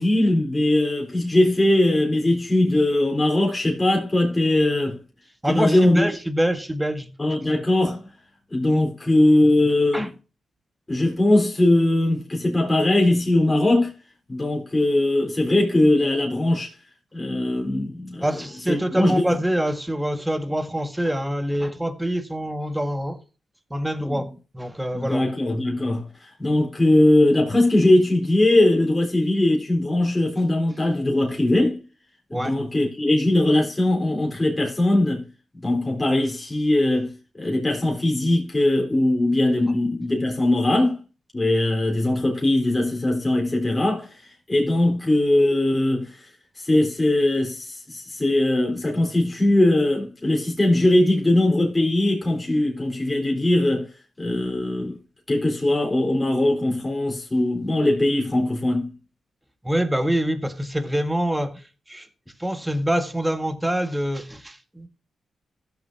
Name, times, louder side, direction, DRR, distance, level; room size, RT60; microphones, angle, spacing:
voice 1, 0.0-5.0 5.5-6.1 7.2-8.0 8.5-10.1 10.9-13.9 14.3-16.7 17.1-18.2 18.7-19.4 24.0-24.2 24.9-26.1 26.4-31.8 32.3-35.2 35.6-41.0 41.3-44.1 44.5-46.2 46.6-53.9 54.2-55.0 55.3-58.9, left 1 dB, 25° left, 3.9 m, -20 dB
voice 2, 5.4-7.1 9.9-10.1 18.2-23.2 23.7-24.3 24.5-25.2 32.3-32.6 59.6-61.6 61.9-62.1 62.4-64.9, right 1 dB, 10° right, 1.7 m, -25 dB
16.0 x 6.9 x 2.7 m
supercardioid pair, 45°, 0 cm